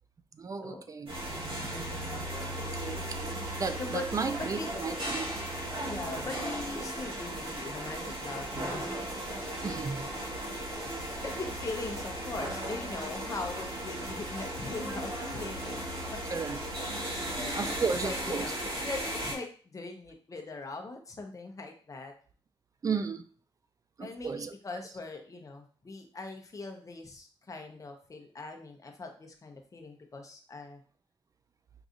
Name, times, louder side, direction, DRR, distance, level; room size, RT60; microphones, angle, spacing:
voice 1, 0.4-2.3 2.6-5.3 9.6-10.1 16.3-16.6 17.5-18.5 22.8-23.2 24.0-24.5, right 5 dB, 35° right, 9 dB, 0.4 m, -35 dB
sound 1, 1.1-19.3, right 1 dB, 65° right, 1.3 m, -36 dB
voice 2, 3.8-4.1 4.4-4.7 5.8-9.0 10.1-10.6 11.2-16.0 17.3-22.1 24.0-30.8, left 3 dB, 35° left, 3 dB, 0.7 m, -41 dB
4.7 x 2.6 x 2.5 m, 0.42 s
cardioid pair, 85°, 10 cm